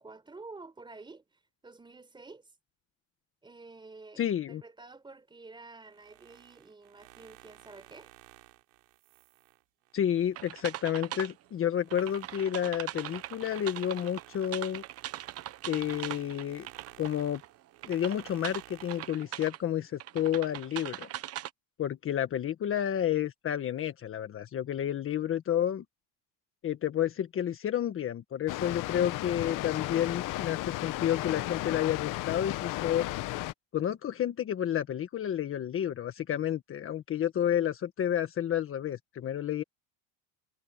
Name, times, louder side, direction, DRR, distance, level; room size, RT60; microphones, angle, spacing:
voice 1, 0.0-2.5 3.4-8.1, right 3 dB, 15° right, 4.4 m, -50 dB
voice 2, 4.2-4.6 9.9-14.8 15.7-16.7 17.0-17.4 17.9-21.1 21.8-25.8 26.6-33.1 33.7-39.6, left 10 dB, 35° left, 1.5 m, -30 dB
sound 1, 5.8-10.9 11.3-19.2, right 25 dB, 80° right, 4.2 m, -55 dB
sound 2, 10.4-11.3 11.9-17.5 17.8-19.6 20.0-21.5, right 13 dB, 40° right, 1.0 m, -41 dB
Water, 28.5-33.5, left 18 dB, 60° left, 1.1 m, -34 dB
cardioid pair, 135°, 37 cm